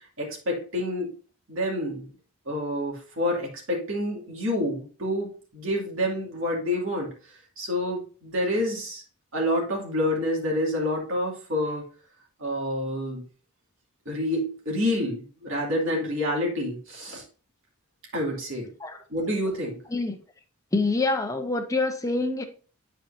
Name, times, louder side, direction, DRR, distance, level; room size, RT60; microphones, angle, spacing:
voice 1, 0.2-1.1 1.5-2.1 2.5-7.1 7.6-9.0 9.3-11.8 12.4-13.2 14.1-17.2 18.1-18.7 19.1-19.8, left 1 dB, 60° right, 2.5 m, -28 dB
voice 2, 20.7-22.4, left 3 dB, 15° left, 0.8 m, -26 dB
10.5 x 4.6 x 2.8 m
head